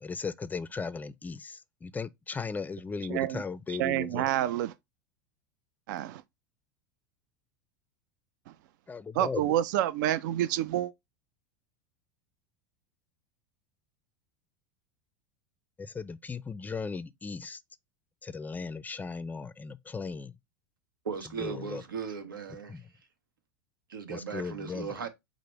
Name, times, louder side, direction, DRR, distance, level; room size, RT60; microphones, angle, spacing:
voice 1, 0.0-4.3 8.9-9.5 15.8-17.6 18.2-20.3 21.4-21.8 22.7-22.8 24.1-24.9, left 5 dB, 15° left, 0.3 m, -37 dB
voice 2, 3.1-3.4 3.7-4.7 5.9-6.2 9.1-10.9, right 13 dB, 70° right, 0.4 m, -28 dB
voice 3, 21.0-22.8 23.9-25.1, right 6 dB, 90° right, 0.9 m, -37 dB
4.9 x 2.0 x 4.5 m
hypercardioid pair, 95°, 11 cm